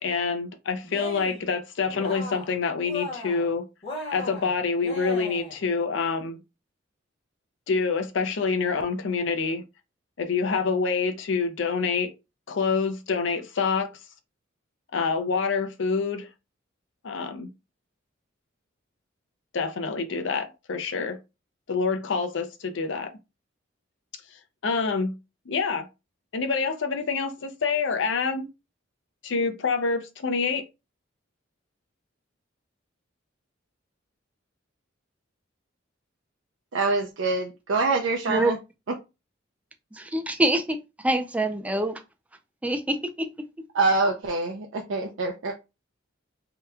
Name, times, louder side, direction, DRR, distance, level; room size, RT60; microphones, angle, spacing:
voice 1, 0.0-3.6 4.1-6.4 7.7-9.6 10.2-12.1 12.5-13.9 14.9-16.3 17.0-17.5 19.5-21.2 21.7-23.1 24.6-25.1 25.5-25.9 26.3-28.5 29.2-30.6, left 5 dB, 65° left, 0.5 m, -26 dB
Cheering, 0.8-1.5 1.9-2.6 2.8-3.5 3.8-5.6, left 2 dB, 30° left, 1.0 m, -36 dB
voice 2, 36.7-38.6 43.7-45.5, right 3 dB, 65° right, 0.5 m, -25 dB
voice 3, 39.9-42.0 42.6-43.3, right 1 dB, 5° right, 0.3 m, -25 dB
2.8 x 2.2 x 3.5 m
head